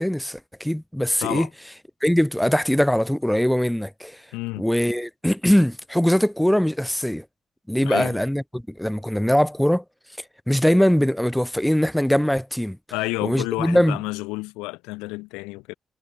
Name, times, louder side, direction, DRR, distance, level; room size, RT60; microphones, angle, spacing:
voice 1, 0.0-1.5 2.0-4.2 4.6-7.2 7.7-9.8 10.5-12.8 13.2-14.0, equal, 5° left, 0.7 m, -21 dB
voice 2, 4.3-4.7 7.8-8.2 12.9-15.7, left 23 dB, 90° left, 3.3 m, -30 dB
hypercardioid pair, 45°, 0 cm